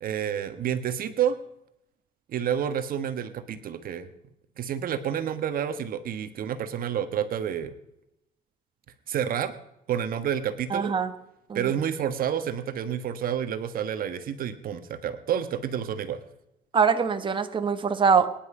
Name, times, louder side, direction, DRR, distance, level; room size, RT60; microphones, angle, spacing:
voice 1, 0.0-1.4 2.3-4.1 4.6-7.7 9.1-9.5 9.9-10.9 11.5-16.2, right 9 dB, 60° right, 9 dB, 1.4 m, -29 dB
voice 2, 10.7-11.1 11.5-11.6 16.7-18.3, right 6 dB, 30° right, 7 dB, 1.4 m, -23 dB
24.5 x 10.5 x 5.0 m, 0.82 s
cardioid pair, 110°, 17 cm